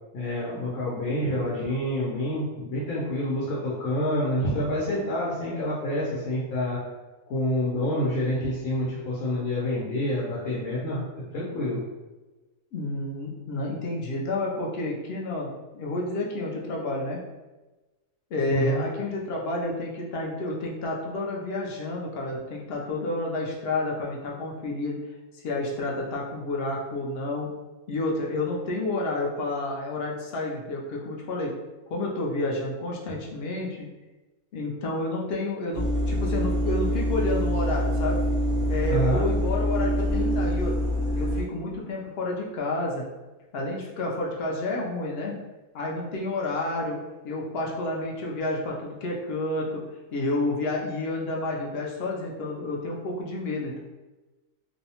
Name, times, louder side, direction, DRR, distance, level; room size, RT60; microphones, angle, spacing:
voice 1, 0.1-6.8 7.3-11.0 11.3-11.8 18.5-18.8 38.9-39.2, equal, 90° left, -6 dB, 1.1 m, -27 dB
voice 2, 12.7-17.2 18.3-25.0 25.3-27.5 27.9-31.5 31.9-33.9 34.5-38.2 38.7-40.7 41.1-43.0 43.5-45.4 45.7-47.0 47.2-49.8 50.1-53.8, left 2 dB, 65° left, -2 dB, 0.6 m, -30 dB
sound 1, 35.7-41.4, equal, 60° right, 0.5 m, -25 dB
2.7 x 2.0 x 2.8 m, 1.1 s
omnidirectional pair, 1.4 m